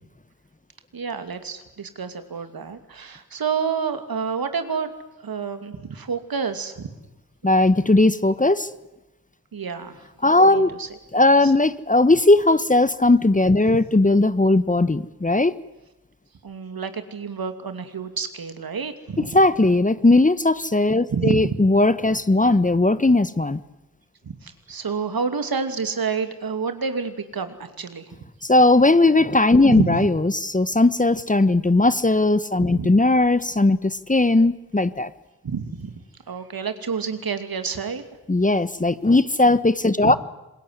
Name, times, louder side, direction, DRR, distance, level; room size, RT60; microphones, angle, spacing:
voice 1, 0.9-4.9 5.2-6.9 9.5-10.0 10.4-10.9 11.4-11.5 13.7-13.8 16.4-19.3 21.1-21.5 24.4-28.1 29.7-30.1 32.6-32.9 35.4-35.9 36.3-38.0 40.0-40.2, right 5 dB, 65° right, 9 dB, 2.7 m, -29 dB
voice 2, 7.4-8.7 10.2-10.7 11.1-15.5 19.2-23.6 28.4-35.1 38.3-40.2, left 2 dB, 20° left, 15 dB, 1.2 m, -18 dB
26.5 x 21.5 x 9.6 m, 0.99 s
supercardioid pair, 40°, 39 cm